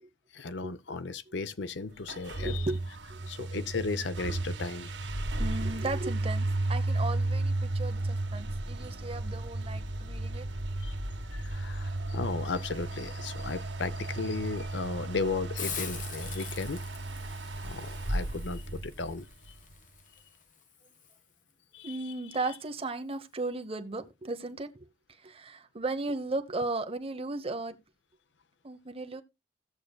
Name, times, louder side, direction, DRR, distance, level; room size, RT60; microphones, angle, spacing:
voice 1, 0.3-2.7 3.3-4.9 5.2-5.3 10.8-10.9 11.3-16.8 17.6-19.3 21.7-22.1, left 4 dB, 75° left, 0.7 m, -35 dB
sound 1, 2.0-19.5, right 2 dB, 85° right, 1.6 m, -34 dB
voice 2, 2.4-3.5 5.4-10.5 21.8-27.8 28.6-29.2, right 2 dB, 30° right, 0.9 m, -36 dB
Hiss, 15.6-21.2, left 7 dB, 45° left, 1.1 m, -44 dB
17.0 x 6.5 x 2.3 m
head